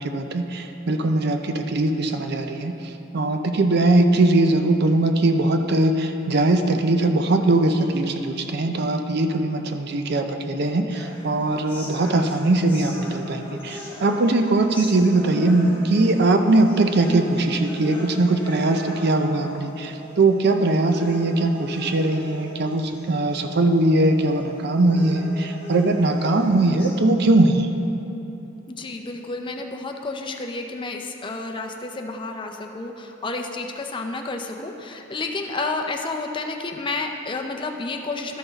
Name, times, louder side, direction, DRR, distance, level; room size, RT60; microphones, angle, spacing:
voice 1, 0.0-2.7 3.1-27.7, right 2 dB, 55° right, 6 dB, 0.5 m, -20 dB
sound 1, 10.9-26.9, left 1 dB, 10° left, 2.2 m, -39 dB
voice 2, 28.7-38.4, left 3 dB, 25° left, 3 dB, 0.5 m, -30 dB
13.0 x 5.9 x 4.0 m, 3.0 s
head